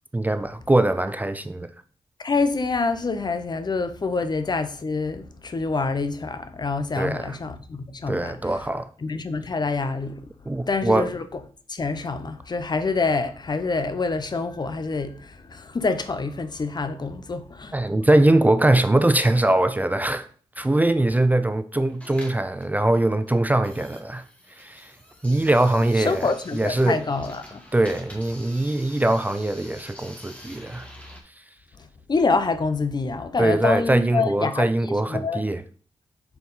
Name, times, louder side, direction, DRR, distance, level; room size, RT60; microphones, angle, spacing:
voice 1, 0.1-1.7 7.0-7.4 8.1-8.9 10.5-11.1 17.7-20.3 20.6-24.2 24.6-24.9 25.2-27.0 27.7-30.9 33.4-35.6, right 1 dB, 15° right, 0.4 m, -22 dB
voice 2, 2.2-8.5 9.0-10.3 10.7-11.2 11.7-17.8 26.0-27.6 32.1-35.4, left 4 dB, 40° left, 0.7 m, -26 dB
sound 1, 21.9-31.2, equal, 10° left, 1.5 m, -46 dB
4.6 x 3.9 x 5.3 m
cardioid pair, 70°, 11 cm